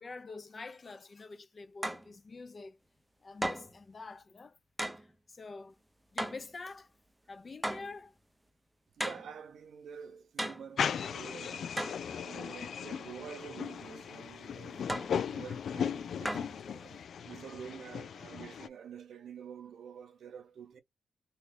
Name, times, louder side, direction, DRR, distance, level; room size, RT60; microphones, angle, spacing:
voice 1, 0.0-2.8 3.2-4.6 5.0-5.7 6.1-6.9 7.3-8.2 14.7-15.2, left 3 dB, 35° left, 0.7 m, -47 dB
sound 1, 1.8-2.1 3.4-3.8 4.8-5.1 6.2-6.5 7.6-7.9 9.0-9.3 10.4-10.7 11.8-12.1 14.9-15.2 16.2-16.6, right 1 dB, 10° right, 0.5 m, -36 dB
voice 2, 9.0-14.9 15.2-20.8, right 7 dB, 70° right, 0.8 m, -48 dB
sound 2, 10.8-18.7, left 7 dB, 65° left, 0.3 m, -37 dB
2.9 x 2.4 x 3.4 m
cardioid pair, 80°, 0 cm